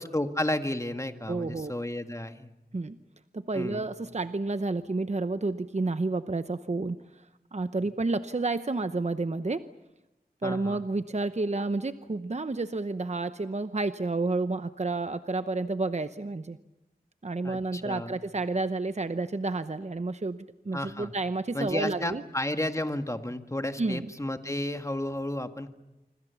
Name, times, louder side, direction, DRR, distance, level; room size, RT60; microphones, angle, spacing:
voice 1, 0.0-2.5 3.5-3.9 10.4-10.8 17.4-18.2 20.7-21.1 21.5-25.7, left 1 dB, 20° left, 7 dB, 1.9 m, -32 dB
voice 2, 1.3-1.7 2.7-3.0 3.3-7.0 7.5-9.6 10.4-16.6 17.2-22.2 23.8-24.1, right 3 dB, 45° right, 11 dB, 0.9 m, -30 dB
27.0 x 25.0 x 7.1 m, 0.97 s
wide cardioid pair, 50°, 16 cm